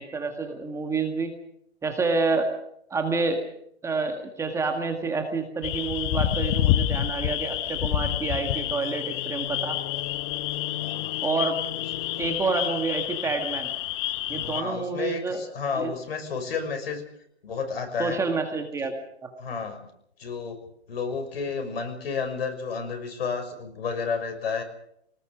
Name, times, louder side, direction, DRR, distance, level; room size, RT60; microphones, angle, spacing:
voice 1, 0.0-1.3 1.8-2.5 2.9-3.4 3.8-9.8 11.2-11.6 12.2-13.7 14.3-15.4 15.8-15.9 18.0-18.9 19.2-19.3, right 4 dB, 10° right, 4 dB, 1.8 m, -28 dB
sound 1, 5.6-14.6, left 13 dB, 25° left, 0.9 m, -28 dB
voice 2, 10.8-11.2 12.0-12.1 14.5-17.0 17.4-18.2 19.4-19.8 20.2-20.6 20.9-24.6, left 5 dB, 65° left, 6 dB, 6.2 m, -31 dB
24.0 x 19.5 x 6.4 m, 0.72 s
hypercardioid pair, 145°, 32 cm